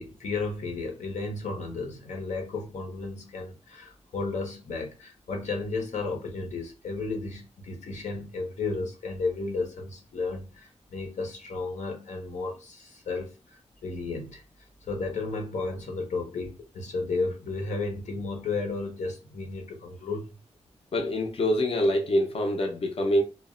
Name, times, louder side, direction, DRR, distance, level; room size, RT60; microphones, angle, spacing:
voice 1, 0.0-14.4 14.9-20.3, left 3 dB, 85° left, 0.7 m, -33 dB
voice 2, 20.9-23.2, equal, 55° left, 0.5 m, -25 dB
2.2 x 2.1 x 3.6 m
wide cardioid pair, 90°, 12 cm